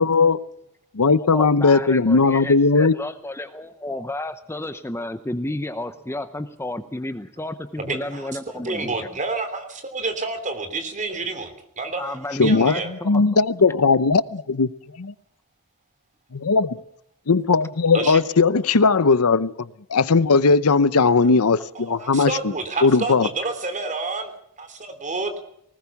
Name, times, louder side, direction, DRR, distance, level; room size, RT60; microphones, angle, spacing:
voice 1, 0.0-0.4 0.9-2.9 12.4-14.7 15.0-15.1 16.3-16.8 17.3-22.3 22.8-23.3, left 4 dB, 80° left, 17 dB, 0.8 m, -18 dB
voice 2, 1.2-9.1 12.0-13.2, left 1 dB, 10° left, 10 dB, 0.8 m, -32 dB
voice 3, 7.8-12.9 17.9-18.2 21.7-25.3, right 3 dB, 35° right, 8 dB, 3.2 m, -29 dB
19.5 x 19.5 x 7.1 m, 0.73 s
head